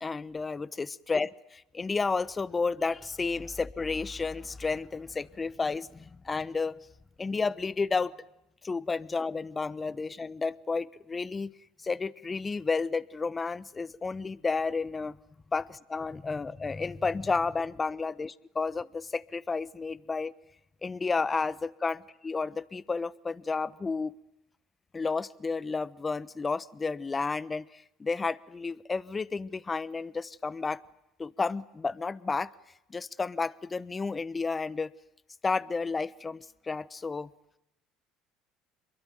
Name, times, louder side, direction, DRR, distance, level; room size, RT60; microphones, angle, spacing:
voice 1, 0.0-6.8 7.2-8.1 8.6-11.5 11.8-15.2 15.5-20.3 20.8-22.0 22.2-24.1 24.9-30.8 31.2-32.5 32.9-34.9 35.4-37.3, left 4 dB, 25° left, 1.1 m, -31 dB
27.0 x 22.5 x 9.3 m
hypercardioid pair, 70°, 0 cm